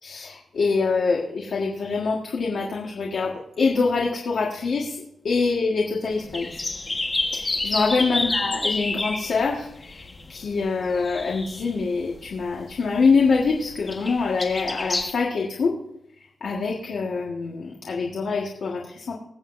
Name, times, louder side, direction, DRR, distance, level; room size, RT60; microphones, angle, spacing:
voice 1, 0.0-6.6 7.3-15.8 16.4-19.1, left 4 dB, 60° left, -2 dB, 1.6 m, -25 dB
sound 1, 6.1-11.8 12.1-15.1, left 2 dB, 25° left, 1.4 m, -29 dB
21.5 x 7.7 x 2.6 m, 0.82 s
wide cardioid pair, 165°, 0 cm